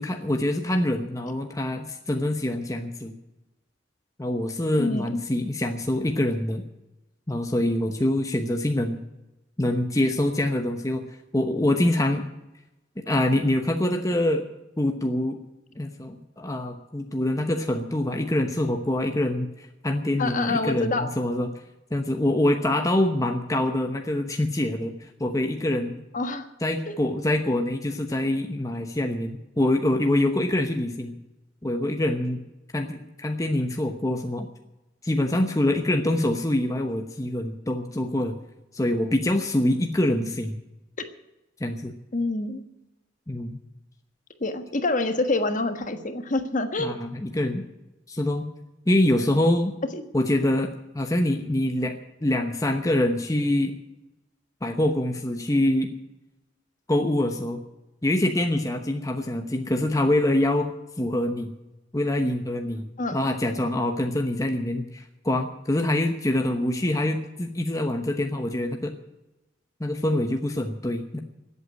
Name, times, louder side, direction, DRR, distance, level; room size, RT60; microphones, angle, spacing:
voice 1, 0.0-3.1 4.2-6.6 7.3-9.0 9.6-11.0 11.3-12.3 13.0-14.4 14.8-15.4 15.8-21.5 21.9-26.0 26.6-31.1 31.6-32.4 32.7-34.5 35.0-38.3 38.7-40.6 41.6-41.9 43.3-43.6 46.8-47.6 48.1-48.5 48.9-49.7 50.1-52.0 52.2-53.7 54.6-55.9 56.9-57.6 58.0-60.7 61.0-61.5 61.9-62.8 63.1-68.9 69.8-71.2, left 1 dB, 20° left, 4 dB, 0.9 m, -25 dB
voice 2, 4.8-5.2 20.2-21.1 26.1-26.5 26.9-27.0 42.1-42.6 44.4-46.9 49.9-50.0 63.0-63.2, left 2 dB, 45° left, 8 dB, 1.4 m, -26 dB
14.5 x 8.3 x 9.6 m, 0.97 s
head